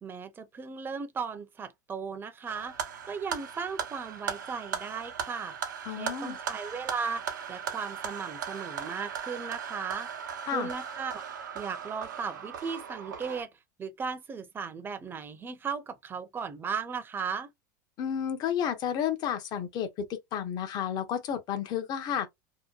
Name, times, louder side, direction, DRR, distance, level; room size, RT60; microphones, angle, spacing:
voice 1, 0.0-2.8 3.0-5.6 5.9-10.1 10.5-11.2 11.5-13.5 13.8-17.5, right 5 dB, 20° right, 0.6 m, -36 dB
sound 1, 2.5-13.4, right 7 dB, 90° right, 0.7 m, -38 dB
voice 2, 5.9-6.4 10.5-10.7 18.0-22.3, left 9 dB, 45° left, 0.8 m, -31 dB
2.8 x 2.2 x 2.3 m
hypercardioid pair, 105°, 10 cm